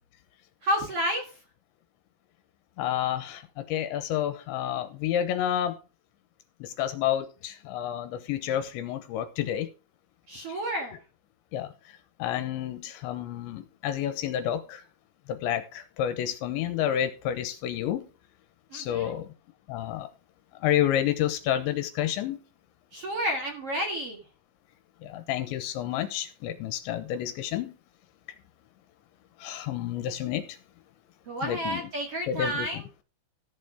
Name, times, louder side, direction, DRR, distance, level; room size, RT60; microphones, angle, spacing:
voice 1, 0.6-1.3 10.3-11.0 18.7-19.1 22.9-24.2 31.3-32.8, equal, 50° right, 1.7 m, -30 dB
voice 2, 2.8-5.8 6.6-9.7 10.5-10.6 11.5-11.7 12.2-14.8 15.3-18.1 18.7-19.3 19.7-20.1 20.6-22.4 25.0-27.7 29.4-30.5 31.4-31.9 32.3-32.7, left 11 dB, 85° left, 3.3 m, -29 dB
14.0 x 6.8 x 5.0 m
omnidirectional pair, 5.3 m